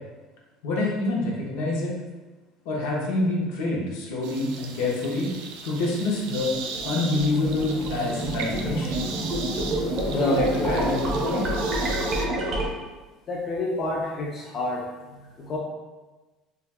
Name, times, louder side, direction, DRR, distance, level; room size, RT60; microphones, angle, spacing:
voice 1, 0.6-1.9 2.6-5.3 5.6-6.5 6.8-9.0 10.1-11.4, left 2 dB, 75° left, -3 dB, 0.7 m, -26 dB
sound 1, 4.2-12.2, right 5 dB, 75° right, 0.3 m, -38 dB
sound 2, 6.4-12.7, right 1 dB, 30° right, 0.5 m, -28 dB
voice 2, 13.3-15.6, left 2 dB, 25° left, -2 dB, 0.3 m, -29 dB
2.3 x 2.3 x 3.3 m, 1.2 s
cardioid pair, 175°, 0 cm